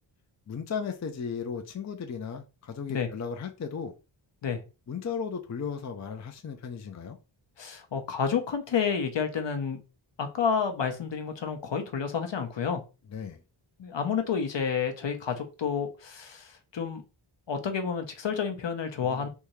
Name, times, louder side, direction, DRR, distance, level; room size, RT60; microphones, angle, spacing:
voice 1, 0.5-3.9 4.9-7.2 13.1-13.4 19.0-19.3, left 6 dB, 35° left, 5 dB, 0.5 m, -35 dB
voice 2, 7.6-9.8 10.2-12.8 13.8-17.0 17.5-19.3, left 6 dB, 60° left, 6 dB, 0.8 m, -30 dB
3.5 x 2.7 x 3.1 m, 0.31 s
wide cardioid pair, 80°, 49 cm